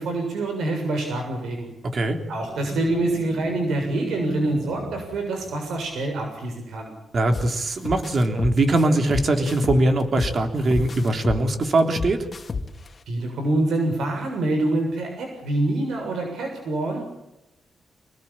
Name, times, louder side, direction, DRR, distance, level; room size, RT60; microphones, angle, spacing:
voice 1, 0.0-1.7 2.3-6.9 13.1-17.1, right 2 dB, 85° right, 3 dB, 7.0 m, -26 dB
voice 2, 1.8-2.2 7.1-12.3, right 2 dB, 45° right, 6 dB, 3.6 m, -21 dB
sound 1, 2.4-6.0, left 2 dB, 10° left, 4.6 m, -38 dB
sound 2, 7.3-7.5 7.8-10.4 10.7-12.9, left 4 dB, 35° left, 2.8 m, -30 dB
26.5 x 19.5 x 8.8 m, 0.89 s
cardioid pair, 115°, 0 cm